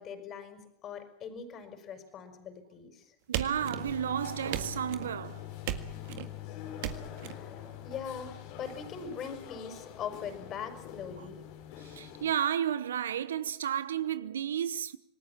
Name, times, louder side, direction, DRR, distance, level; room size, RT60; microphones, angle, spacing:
voice 1, 0.0-3.0 7.2-7.5 7.8-11.4, left 7 dB, 45° left, 5.7 m, -41 dB
sound 1, 3.3-4.1 4.5-5.1 5.7-6.3 6.8-7.3, right 12 dB, 65° right, 1.8 m, -36 dB
voice 2, 3.3-5.4 11.2-11.3 11.8-15.0, right 9 dB, 80° right, 0.9 m, -32 dB
sound 2, 3.6-12.3, left 11 dB, 65° left, 4.4 m, -45 dB
27.0 x 19.5 x 7.3 m
hypercardioid pair, 85°, 0 cm